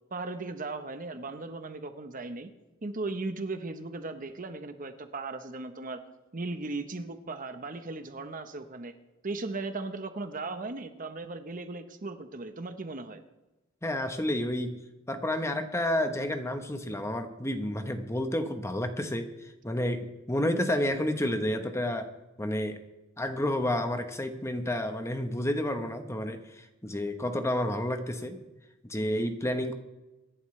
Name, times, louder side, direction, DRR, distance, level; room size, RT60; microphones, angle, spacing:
voice 1, 0.1-2.5 2.8-6.0 6.3-8.9 9.2-13.2, right 3 dB, 45° right, 8 dB, 1.0 m, -37 dB
voice 2, 13.8-22.1 22.4-22.8 23.2-28.4 28.9-29.7, left 1 dB, 15° left, 7 dB, 1.1 m, -30 dB
24.5 x 11.0 x 3.3 m, 1.0 s
head